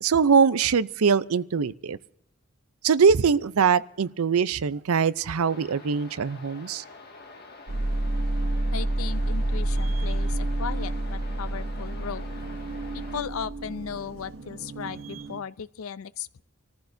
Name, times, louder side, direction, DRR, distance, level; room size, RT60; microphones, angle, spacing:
voice 1, 0.0-2.0 2.8-6.8, right 6 dB, 75° right, 0.5 m, -22 dB
sound 1, 5.3-13.2, left 3 dB, 45° left, 1.9 m, -46 dB
sound 2, 7.7-15.4, right 1 dB, 60° right, 1.0 m, -29 dB
voice 2, 8.7-12.4 12.9-16.4, left 7 dB, 70° left, 0.5 m, -36 dB
26.5 x 14.5 x 2.6 m
head